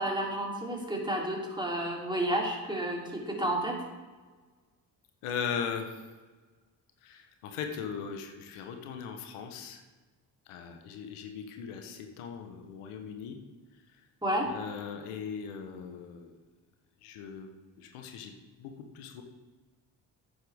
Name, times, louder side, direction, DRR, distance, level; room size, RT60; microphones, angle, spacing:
voice 1, 0.0-3.8 14.2-14.5, right 1 dB, 10° right, -2 dB, 3.2 m, -31 dB
voice 2, 5.2-5.9 7.0-9.8 10.5-13.4 14.4-16.3 17.0-17.5 17.8-18.3 18.6-19.2, left 7 dB, 85° left, 4 dB, 1.1 m, -39 dB
10.0 x 9.7 x 3.5 m, 1.4 s
hypercardioid pair, 45°, 50 cm